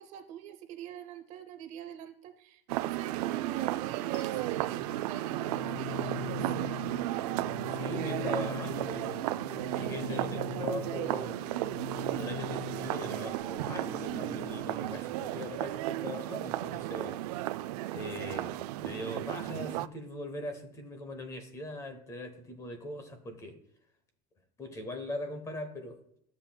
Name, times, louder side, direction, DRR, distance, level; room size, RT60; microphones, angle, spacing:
voice 1, 0.0-6.8, right 11 dB, 40° right, 8 dB, 0.7 m, -44 dB
sound 1, 2.7-19.9, right 16 dB, 85° right, 0.4 m, -34 dB
sound 2, 4.1-15.1, left 9 dB, 80° left, 0.7 m, -43 dB
voice 2, 7.7-11.4 11.9-17.2 17.9-23.6 24.6-26.0, left 1 dB, 15° left, 8 dB, 0.9 m, -41 dB
sound 3, 13.2-15.8 16.1-16.2, left 1 dB, 5° right, 1.1 m, -46 dB
12.5 x 7.4 x 2.2 m, 0.70 s
cardioid pair, 170°, 19 cm